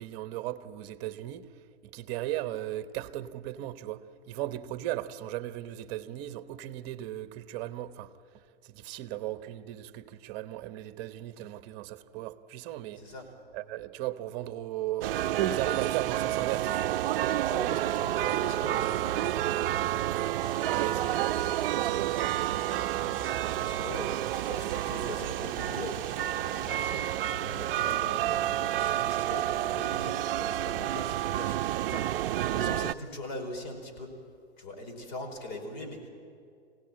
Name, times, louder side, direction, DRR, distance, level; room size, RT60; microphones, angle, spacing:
voice 1, 0.0-1.5 1.8-8.1 8.6-13.0 13.5-17.0 20.7-21.2 21.5-22.9, right 14 dB, 35° right, 1.0 m, -36 dB
sound 1, 15.0-32.9, right 13 dB, 60° right, 0.6 m, -29 dB
voice 2, 17.5-19.7 21.8-22.0 23.4-32.2 32.5-34.1 34.6-36.1, left 2 dB, 50° left, 4.9 m, -42 dB
sound 2, 20.4-26.9, right 1 dB, 5° left, 0.6 m, -49 dB
25.0 x 17.5 x 9.0 m
hypercardioid pair, 135°, 32 cm